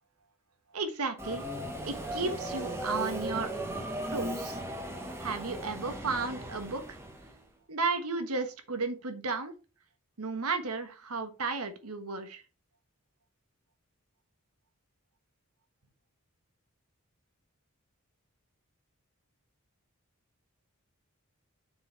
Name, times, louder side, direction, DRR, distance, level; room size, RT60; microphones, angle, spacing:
voice 1, 0.7-1.4 1.9-3.5 4.1-4.6 5.2-7.0 7.7-9.5 10.2-12.4, right 4 dB, 80° right, 8 dB, 1.3 m, -33 dB
Subway metro underground, 1.2-7.4, equal, 10° right, 1.2 m, -37 dB
7.1 x 4.7 x 4.6 m, 0.32 s
head